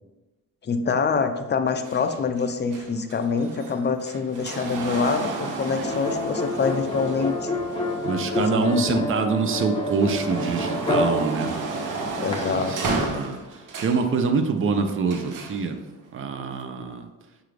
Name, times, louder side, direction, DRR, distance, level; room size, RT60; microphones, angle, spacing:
voice 1, 0.6-7.5 8.4-9.0 12.2-13.2, left 5 dB, 35° left, 8 dB, 0.4 m, -25 dB
sound 1, 1.9-9.1 9.5-14.1 15.1-15.6 16.5-16.6, right 3 dB, 70° right, 0.8 m, -33 dB
sound 2, 5.8-12.3, left 1 dB, 15° left, 0.9 m, -28 dB
voice 2, 8.0-11.5 12.5-13.4 13.8-15.8 16.1-17.1, right 5 dB, 40° right, 6 dB, 0.5 m, -25 dB
5.8 x 2.4 x 3.2 m, 1.1 s
cardioid pair, 90°, 33 cm